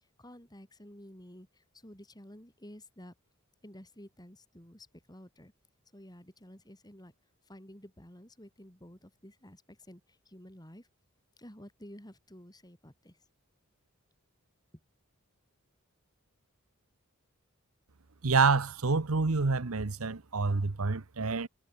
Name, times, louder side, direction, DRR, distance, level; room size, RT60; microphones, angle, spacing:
voice 1, 0.2-3.1 3.6-5.5 5.9-7.1 7.5-10.9 11.4-13.2, equal, 20° left, 7.1 m, -52 dB
voice 2, 18.2-21.5, right 4 dB, 75° right, 1.0 m, -27 dB
head